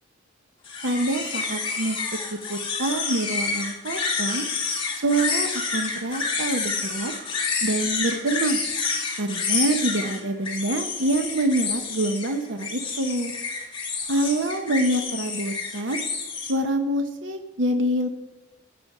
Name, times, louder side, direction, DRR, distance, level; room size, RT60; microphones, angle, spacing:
sound 1, 0.6-16.5, left 4 dB, 25° left, 2.2 m, -29 dB
voice 1, 0.8-2.0 2.3-4.5 5.0-7.1 7.6-8.6 9.2-13.3 14.1-16.0 16.5-18.1, right 1 dB, 70° right, 6 dB, 0.8 m, -26 dB
14.0 x 8.8 x 4.8 m, 1.0 s
head